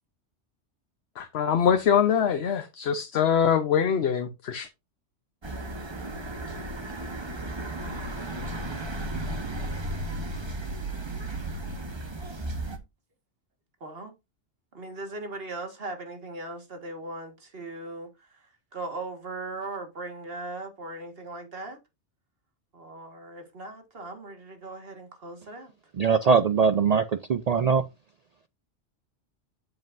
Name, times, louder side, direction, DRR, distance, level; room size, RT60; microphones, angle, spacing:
voice 1, 1.2-4.7, left 7 dB, 60° left, 1.0 m, -23 dB
sound 1, 5.4-12.8, right 1 dB, 25° right, 1.0 m, -34 dB
voice 2, 13.8-14.1 14.7-18.5 18.7-21.8 22.7-25.7, right 2 dB, 50° right, 1.9 m, -39 dB
voice 3, 26.0-27.8, right 6 dB, 80° right, 0.3 m, -22 dB
7.7 x 7.4 x 2.6 m
omnidirectional pair, 1.2 m